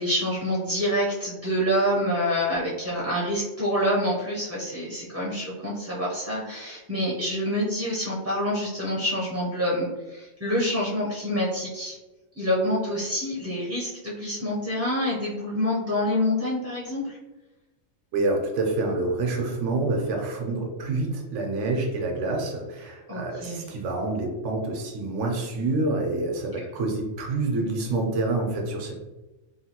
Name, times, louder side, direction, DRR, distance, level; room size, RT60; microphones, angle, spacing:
voice 1, 0.0-12.0 12.4-17.2 23.1-23.7 26.5-26.6, equal, 20° right, -6 dB, 0.4 m, -27 dB
voice 2, 18.1-28.9, right 2 dB, 75° right, 1 dB, 1.0 m, -27 dB
3.1 x 2.2 x 2.8 m, 1.1 s
omnidirectional pair, 1.3 m